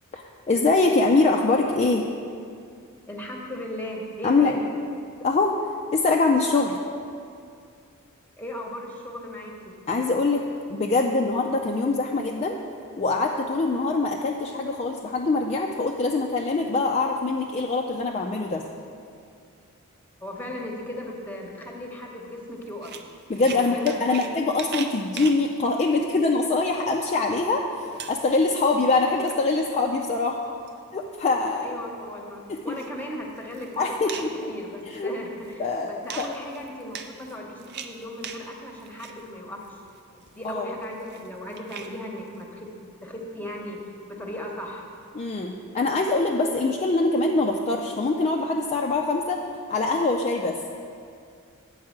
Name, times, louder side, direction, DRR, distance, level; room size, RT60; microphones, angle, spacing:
voice 1, 0.1-2.1 4.2-4.6 5.2-5.6 5.9-6.8 9.9-10.4 10.7-12.6 13.0-18.7 23.3-27.6 28.1-30.4 30.9-31.8 32.5-32.6 33.8-34.5 34.9-35.1 35.6-36.4 40.4-40.7 45.1-49.4 49.7-50.6, left 3 dB, 30° left, 0 dB, 0.4 m, -23 dB
voice 2, 3.1-4.7 8.4-9.7 20.2-22.9 23.4-24.4 31.6-39.6 40.4-42.7 43.0-43.8 44.1-44.9, left 1 dB, 10° left, 0 dB, 1.0 m, -37 dB
sound 1, 22.6-24.3 24.6-25.4 26.4-26.5 26.9-27.0 27.4-27.5 27.9-28.6 29.0-29.3 30.1-30.7 31.2-31.3 31.6-31.7 32.6-33.0 33.4-34.4 34.9-35.5 36.1-38.5 38.8-39.2 39.6-41.9, right 7 dB, 50° right, 0.5 m, -39 dB
8.7 x 4.7 x 7.2 m, 2.4 s
head